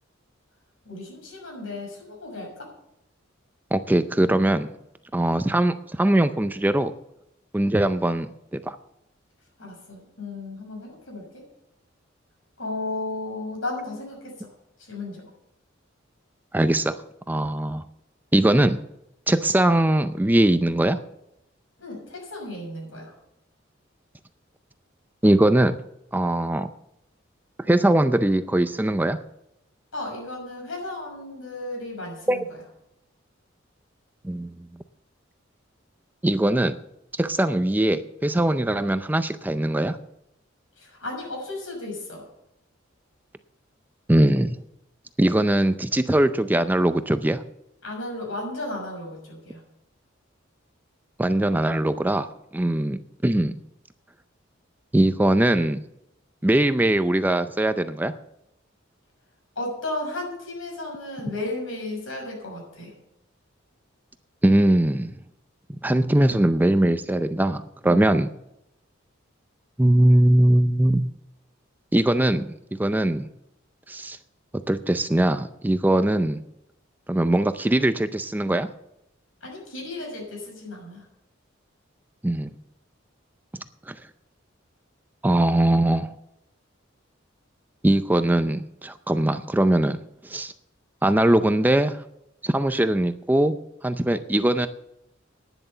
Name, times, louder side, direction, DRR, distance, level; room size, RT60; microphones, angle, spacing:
voice 1, 0.8-2.7 9.6-11.5 12.6-14.5 14.8-15.3 21.8-23.1 29.9-32.5 40.8-42.2 47.8-49.6 59.6-62.9 67.8-68.1 79.4-81.1, left 2 dB, 80° left, 0 dB, 6.3 m, -34 dB
voice 2, 3.7-4.7 5.1-6.9 7.5-8.8 16.5-16.9 17.3-17.8 18.3-18.8 19.3-21.0 25.2-25.8 26.1-26.7 27.7-29.2 32.3-32.4 34.2-34.5 36.2-36.8 37.1-40.0 44.1-44.6 45.2-47.4 51.2-52.3 52.5-53.5 54.9-55.8 56.4-58.1 64.4-65.1 65.8-68.3 69.8-71.1 71.9-73.3 73.9-74.2 74.7-76.4 77.1-78.7 82.2-82.5 83.9-84.0 85.2-86.1 87.8-90.0 90.2-90.5 91.0-92.0 92.4-93.6 93.8-94.7, right 1 dB, 10° right, 10 dB, 0.4 m, -21 dB
11.0 x 10.5 x 6.7 m, 0.83 s
head